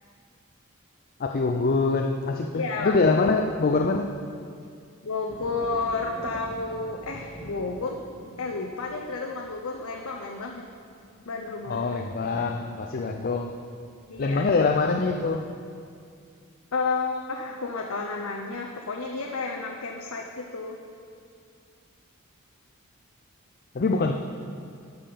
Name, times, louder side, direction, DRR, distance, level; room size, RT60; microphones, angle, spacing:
voice 1, 1.2-4.2 11.7-13.6 14.2-15.5 23.7-24.1, left 3 dB, 45° left, 4 dB, 0.5 m, -24 dB
voice 2, 2.5-3.0 5.0-8.0 8.4-10.7 11.3-11.8 12.3-12.5 12.9-13.2 14.1-14.4 16.7-20.8, left 3 dB, 80° left, 1 dB, 0.8 m, -31 dB
sound 1, 5.3-14.9 15.3-15.9, equal, 15° right, 1.3 m, -46 dB
12.5 x 5.5 x 6.8 m, 2.3 s
head